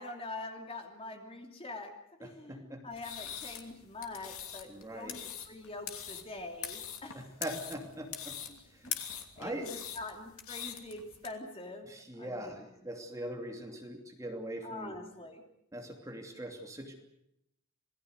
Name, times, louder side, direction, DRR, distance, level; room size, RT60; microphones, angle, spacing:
voice 1, 0.0-1.9 2.2-7.3 8.5-8.9 9.4-11.9 12.2-12.6 14.6-15.4, left 2 dB, 25° left, 3 dB, 3.0 m, -44 dB
voice 2, 2.2-2.8 4.7-5.2 7.1-8.3 8.7-9.1 9.4-9.7 11.8-14.9 15.7-17.0, right 1 dB, 15° right, 3 dB, 2.8 m, -42 dB
sound 1, 2.9-11.3, left 9 dB, 70° left, 2.9 m, -43 dB
27.5 x 19.0 x 6.7 m, 0.80 s
head